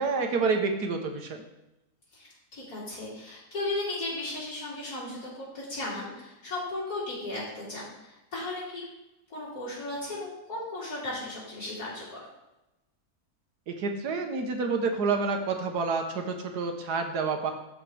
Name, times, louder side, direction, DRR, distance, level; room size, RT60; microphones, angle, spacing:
voice 1, 0.0-1.4 13.7-17.5, right 4 dB, 90° right, 4 dB, 1.6 m, -28 dB
voice 2, 2.1-8.8 9.3-12.3, left 2 dB, 75° left, -9 dB, 3.9 m, -36 dB
13.5 x 5.0 x 3.4 m, 0.95 s
omnidirectional pair, 1.7 m